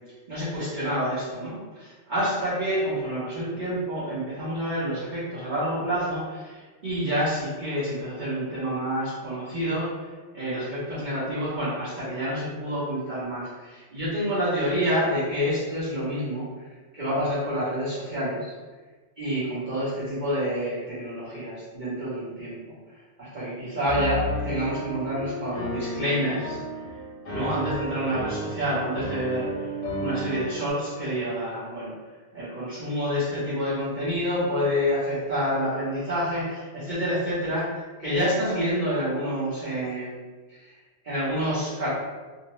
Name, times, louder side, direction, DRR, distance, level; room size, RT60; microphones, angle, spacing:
voice 1, 0.3-16.5 16.9-18.5 19.2-22.7 23.2-26.6 27.3-31.9 32.3-40.2 40.5-40.7 41.0-41.9, equal, 45° right, -11 dB, 0.9 m, -28 dB
Piano, 23.8-30.7, equal, 60° left, 0.8 m, -33 dB
2.7 x 2.0 x 2.9 m, 1.3 s
omnidirectional pair, 1.2 m